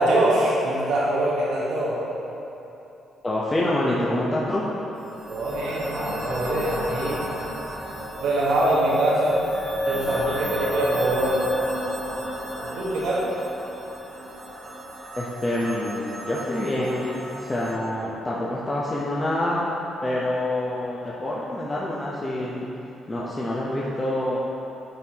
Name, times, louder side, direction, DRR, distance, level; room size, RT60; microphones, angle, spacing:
voice 1, 0.0-2.0 5.3-7.2 8.2-9.4 9.9-11.4 12.7-13.2, right 1 dB, 90° right, -7 dB, 1.3 m, -23 dB
voice 2, 3.2-4.7 15.2-19.6 20.0-22.6 23.1-24.4, left 1 dB, 20° left, -6 dB, 0.8 m, -26 dB
sound 1, 5.0-17.7, equal, 35° right, 1.3 m, -31 dB
9.6 x 4.5 x 2.9 m, 3.0 s
cardioid pair, 90°, 0 cm